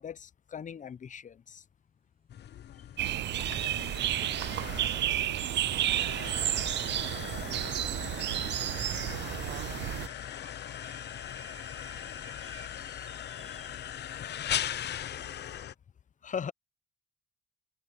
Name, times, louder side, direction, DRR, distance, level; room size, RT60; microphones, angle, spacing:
voice 1, 0.0-1.6 5.4-5.5 12.4-12.6 16.2-16.5, left 7 dB, 40° left, 0.8 m, -40 dB
voice 2, 2.3-2.4, left 12 dB, 75° left, 7.1 m, -70 dB
sound 1, 2.3-15.7, left 10 dB, 60° left, 0.9 m, -39 dB
sound 2, 3.0-10.1, right 13 dB, 60° right, 0.5 m, -31 dB
sound 3, 5.3-13.9, right 5 dB, 30° right, 1.6 m, -56 dB
cardioid pair, 90°, 20 cm